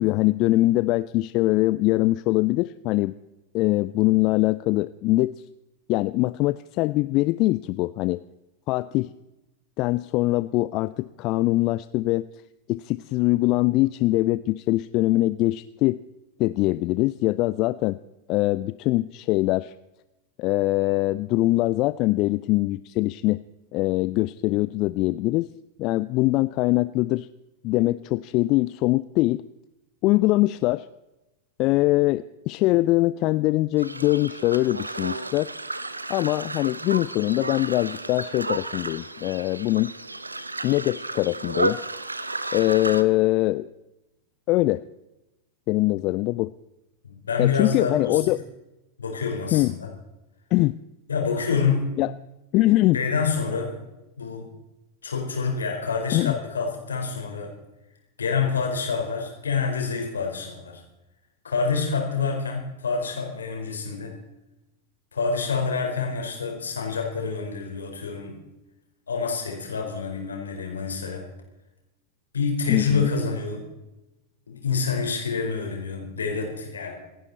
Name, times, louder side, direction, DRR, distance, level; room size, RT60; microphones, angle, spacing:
voice 1, 0.0-3.1 3.5-5.4 5.9-8.2 8.7-9.1 9.8-12.3 12.7-16.0 16.4-18.0 18.3-19.7 20.4-23.4 23.7-25.5 25.8-27.3 27.6-29.4 30.0-30.9 31.6-35.5 36.1-39.9 40.6-41.8 42.5-43.7 44.5-44.8 45.7-46.5 47.4-48.4 49.5-49.7 50.5-50.8 52.0-52.1 52.5-53.0 56.1-56.3 72.7-73.1, left 19 dB, 40° left, 16 dB, 0.4 m, -22 dB
sound 1, 33.8-43.0, right 2 dB, 80° right, 0.8 m, -32 dB
voice 2, 47.0-48.2 49.0-49.9 51.1-51.9 52.9-53.7 54.2-54.5 55.0-57.5 58.2-60.8 61.4-64.1 65.1-68.4 69.1-71.2 72.3-73.7 74.5-77.0, left 5 dB, 70° left, 1 dB, 4.7 m, -27 dB
27.0 x 10.5 x 4.2 m, 0.98 s
figure-of-eight pair, 90°, 0 cm